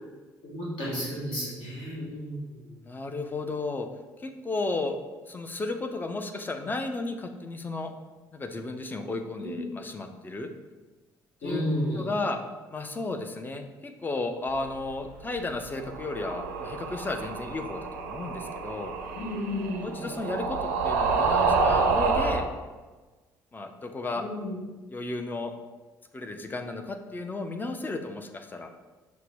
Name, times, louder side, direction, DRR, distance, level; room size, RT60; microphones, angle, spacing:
voice 1, 0.4-2.8 9.4-9.6 11.4-12.1 19.1-20.0 24.1-24.6, left 1 dB, 60° left, -7 dB, 1.2 m, -32 dB
voice 2, 2.8-3.9 4.2-5.0 5.3-7.9 8.3-10.5 11.4-11.6 12.0-12.4 12.7-19.0 19.8-22.4 23.5-24.3 24.9-25.5 26.1-28.7, left 3 dB, 20° left, 6 dB, 0.4 m, -33 dB
sound 1, 15.8-22.5, right 4 dB, 70° right, 0.4 m, -28 dB
5.7 x 2.0 x 3.4 m, 1.3 s
figure-of-eight pair, 50°, 10 cm